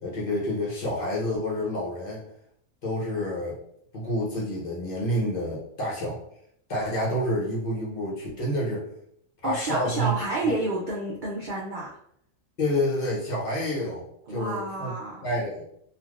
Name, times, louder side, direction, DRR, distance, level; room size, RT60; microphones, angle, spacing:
voice 1, 0.0-2.3 2.8-3.6 3.9-6.2 6.7-8.8 9.4-10.1 12.6-14.9 15.2-15.6, left 1 dB, 45° left, -5 dB, 0.9 m, -28 dB
voice 2, 9.4-11.9 14.3-15.2, right 2 dB, 65° right, -4 dB, 0.5 m, -30 dB
3.2 x 2.4 x 2.4 m, 0.71 s
omnidirectional pair, 1.5 m